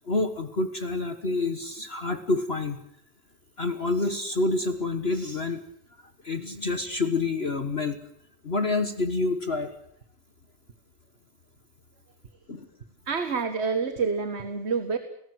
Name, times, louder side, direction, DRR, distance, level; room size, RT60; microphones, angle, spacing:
voice 1, 0.1-2.8 3.6-5.6 6.2-8.0 8.4-9.7 12.5-12.7, left 3 dB, 35° left, 9 dB, 1.6 m, -27 dB
voice 2, 13.1-15.0, right 5 dB, 40° right, 9 dB, 1.7 m, -27 dB
29.0 x 19.0 x 8.0 m, 0.73 s
omnidirectional pair, 1.9 m